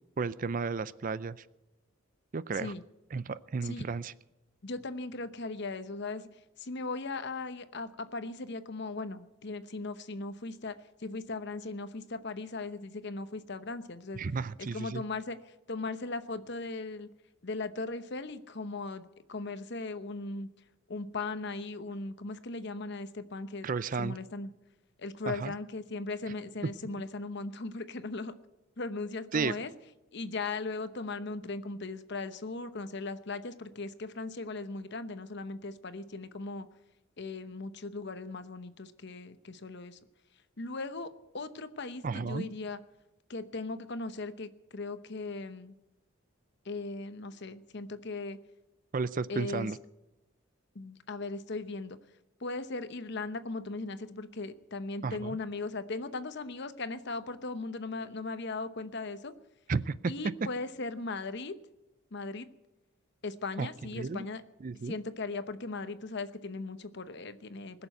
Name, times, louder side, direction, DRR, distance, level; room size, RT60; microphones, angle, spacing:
voice 1, 0.2-1.4 2.3-2.7 3.1-4.1 14.1-15.0 23.6-24.2 25.3-25.5 29.3-29.6 42.0-42.5 48.9-49.8 55.0-55.4 59.7-60.1 63.6-63.7 64.0-64.3 64.6-64.9, right 4 dB, 40° right, 17 dB, 0.4 m, -33 dB
voice 2, 4.6-6.3 6.6-14.2 14.6-15.4 15.7-17.1 17.4-20.5 20.9-23.7 24.0-24.5 25.0-28.3 28.8-29.7 30.1-36.7 37.2-40.0 40.6-42.8 43.3-45.7 46.6-48.4 49.3-49.7 50.7-52.0 52.4-59.3 60.1-61.5 62.1-62.5 63.2-64.4 64.8-67.9, left 3 dB, 55° left, 11 dB, 0.9 m, -38 dB
20.5 x 7.0 x 9.0 m, 0.99 s
head